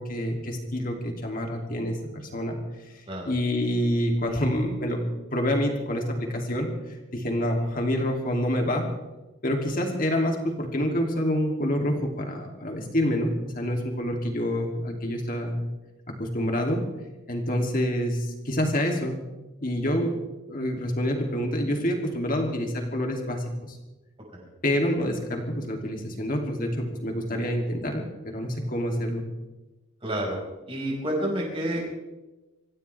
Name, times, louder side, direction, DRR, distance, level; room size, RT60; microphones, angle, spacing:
voice 1, 0.0-2.0 2.3-2.6 2.9-5.0 5.3-6.7 7.1-8.9 9.4-15.6 16.2-16.8 17.3-19.2 19.6-20.2 20.5-23.8 24.6-28.0 28.3-29.2, equal, 40° left, 2 dB, 2.8 m, -27 dB
voice 2, 30.0-30.4 30.7-31.8, right 1 dB, 25° right, -3 dB, 5.5 m, -29 dB
26.0 x 15.0 x 3.5 m, 1.1 s
head